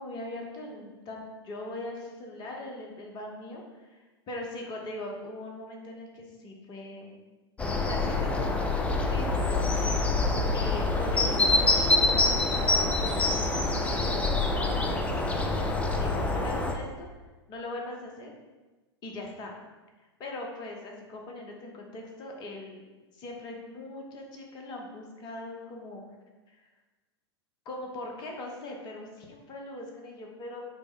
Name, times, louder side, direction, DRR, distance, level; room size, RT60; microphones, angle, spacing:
voice 1, 0.0-7.1 7.6-15.5 15.9-17.1 17.5-18.3 19.0-19.5 20.2-22.9 23.2-26.0 26.5-26.6 27.6-30.6, left 2 dB, 30° left, 1 dB, 0.8 m, -41 dB
sound 1, 7.6-16.7, left 2 dB, 10° left, 0.4 m, -26 dB
5.8 x 2.1 x 3.8 m, 1.2 s
figure-of-eight pair, 95°, 15 cm